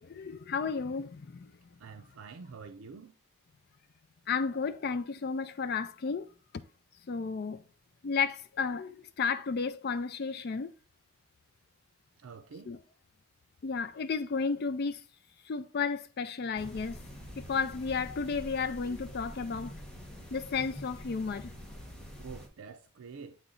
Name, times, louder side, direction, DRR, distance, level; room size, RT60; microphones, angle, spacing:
voice 1, 0.0-1.5 4.3-6.3 7.1-7.6 8.0-10.7 12.7-12.8 13.6-15.0 15.5-17.0 17.4-19.7 20.3-21.5, left 5 dB, 50° left, 0.4 m, -33 dB
voice 2, 1.8-3.1 12.2-12.7 22.2-23.4, right 5 dB, 80° right, 0.5 m, -47 dB
sound 1, 16.6-22.5, equal, 5° left, 1.2 m, -46 dB
8.2 x 3.1 x 3.8 m
head